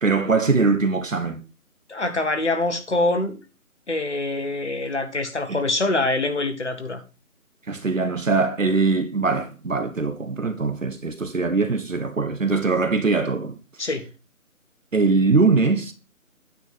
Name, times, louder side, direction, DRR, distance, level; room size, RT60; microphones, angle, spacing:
voice 1, 0.0-1.4 5.5-5.6 7.7-13.6 14.9-15.9, right 4 dB, 60° right, 1.2 m, -22 dB
voice 2, 1.9-3.4 3.9-7.0 13.8-14.0, left 2 dB, 50° left, 1.4 m, -24 dB
9.1 x 3.5 x 6.1 m
figure-of-eight pair, 160°, 43 cm